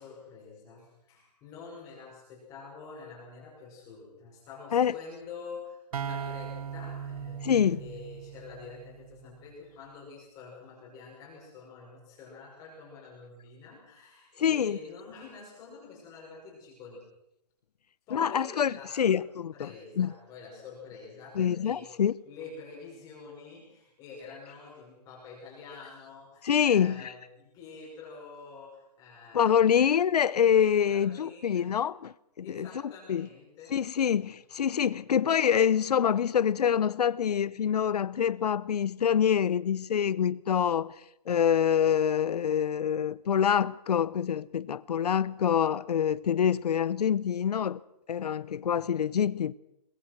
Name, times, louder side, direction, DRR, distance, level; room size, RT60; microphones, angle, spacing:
voice 1, 0.0-17.0 18.1-19.2 19.5-21.9 22.2-29.9 30.9-31.8 32.4-34.0, left 4 dB, 20° left, 5.7 m, -47 dB
sound 1, 5.9-9.6, right 8 dB, 65° right, 0.9 m, -39 dB
voice 2, 7.4-7.8 14.4-14.8 18.1-20.1 21.4-22.1 26.4-27.1 29.3-33.3 33.7-41.0 41.3-47.8 48.1-49.5, left 8 dB, 75° left, 0.8 m, -26 dB
22.0 x 21.5 x 6.1 m
hypercardioid pair, 170°, 20 cm